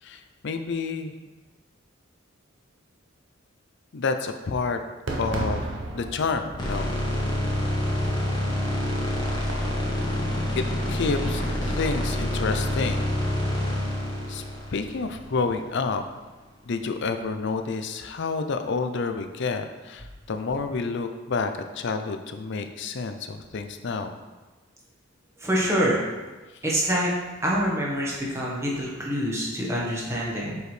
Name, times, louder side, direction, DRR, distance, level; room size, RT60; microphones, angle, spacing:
voice 1, 0.0-1.1 3.9-4.8 5.2-6.9 10.6-10.7 10.9-13.1 14.3-14.5 14.7-16.0 16.7-24.2, left 4 dB, 60° left, 7 dB, 0.5 m, -29 dB
Fireworks, 5.1-10.1, right 1 dB, 70° right, 0.9 m, -35 dB
sound 1, 6.6-15.8, left 1 dB, 20° left, 1.3 m, -27 dB
voice 2, 25.4-26.0 26.6-27.1 27.4-30.6, equal, 15° right, -5 dB, 1.4 m, -26 dB
7.9 x 4.7 x 3.3 m, 1.2 s
head